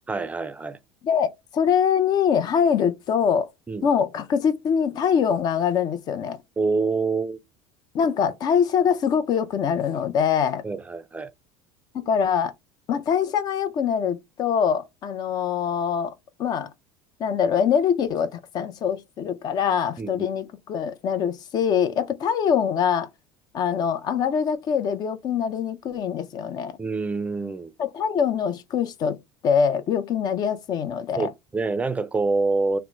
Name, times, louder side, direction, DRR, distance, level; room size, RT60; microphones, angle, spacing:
voice 1, 0.1-0.8 3.7-3.9 6.6-7.4 10.6-11.3 20.0-20.3 26.8-27.7 31.2-32.8, right 3 dB, 15° right, 0.4 m, -26 dB
voice 2, 1.0-3.5 3.8-6.4 7.9-10.6 11.9-12.5 12.9-16.1 16.4-16.7 17.2-23.1 23.5-26.8 27.8-29.2 29.4-31.3, left 7 dB, 45° left, 0.5 m, -23 dB
2.9 x 2.1 x 3.3 m
supercardioid pair, 90°, 10 cm